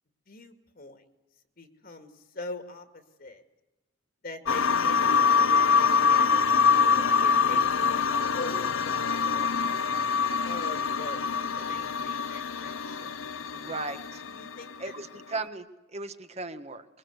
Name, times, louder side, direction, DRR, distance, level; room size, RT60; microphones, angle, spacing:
voice 1, 0.3-1.0 1.6-3.4 4.2-7.6 7.9-9.5 10.3-13.1 13.6-13.8 14.3-14.9, left 2 dB, 50° left, 6 dB, 2.4 m, -43 dB
sound 1, 4.5-14.7 15.0-15.1, left 6 dB, 85° left, 0.8 m, -25 dB
voice 2, 13.5-14.2 14.8-16.9, right 3 dB, 35° right, 9 dB, 1.5 m, -37 dB
25.0 x 22.5 x 8.2 m, 1.1 s
head